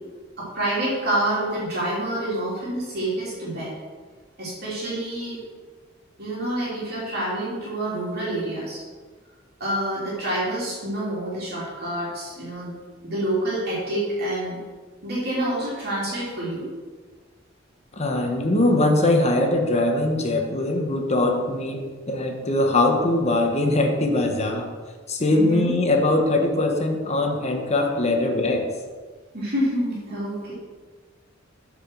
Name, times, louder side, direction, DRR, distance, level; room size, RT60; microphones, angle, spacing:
voice 1, 0.4-3.7 4.4-5.4 6.2-8.8 9.6-12.8 13.0-14.6 15.0-16.7 25.3-25.7 29.3-30.5, right 1 dB, 55° right, -7 dB, 3.1 m, -27 dB
voice 2, 18.0-24.7 25.1-28.7, left 2 dB, 35° left, 3 dB, 1.1 m, -21 dB
8.8 x 5.1 x 6.3 m, 1.5 s
head